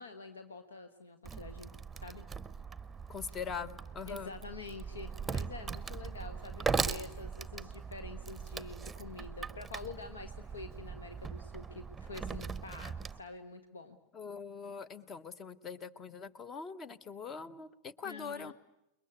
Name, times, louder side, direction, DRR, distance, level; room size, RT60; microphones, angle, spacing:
voice 1, 0.0-1.7 1.9-2.2 3.3-3.4 4.1-14.0 18.0-18.5, left 4 dB, 70° left, 8 dB, 1.5 m, -47 dB
Wood, 1.2-13.2, right 5 dB, 10° right, 0.9 m, -40 dB
voice 2, 3.1-4.3 14.1-18.5, left 6 dB, 25° left, 18 dB, 1.2 m, -42 dB
29.5 x 22.0 x 8.3 m, 0.87 s
figure-of-eight pair, 90°, 0 cm